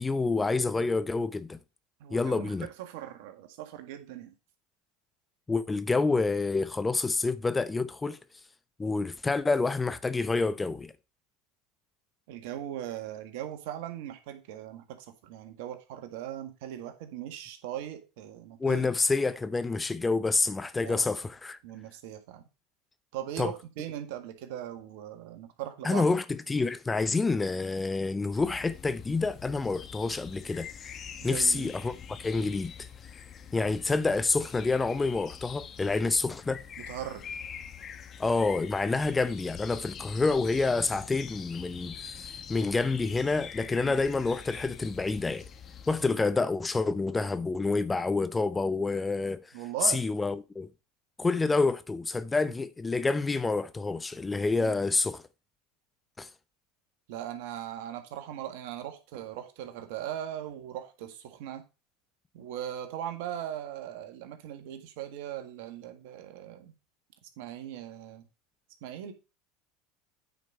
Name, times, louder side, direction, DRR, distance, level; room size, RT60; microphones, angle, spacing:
voice 1, 0.0-1.6 2.1-2.7 5.5-8.2 8.8-10.9 18.6-21.6 23.4-23.5 25.8-30.9 31.2-32.9 33.5-36.6 38.2-42.1 42.5-45.4 45.9-49.4 49.8-50.7 51.2-55.2 56.2-56.3, left 3 dB, 15° left, 0.7 m, -28 dB
voice 2, 2.0-4.3 12.3-18.9 20.8-21.1 21.6-22.4 23.1-26.1 31.2-31.7 36.8-37.2 43.8-43.9 46.0-46.3 49.5-50.1 52.4-52.5 54.6-54.7 57.1-61.6 62.3-66.7 67.2-68.2 68.8-69.1, right 11 dB, 70° right, 1.7 m, -39 dB
sound 1, 28.3-46.1, left 8 dB, 40° left, 1.0 m, -45 dB
9.0 x 5.1 x 5.4 m
hypercardioid pair, 90°, 0 cm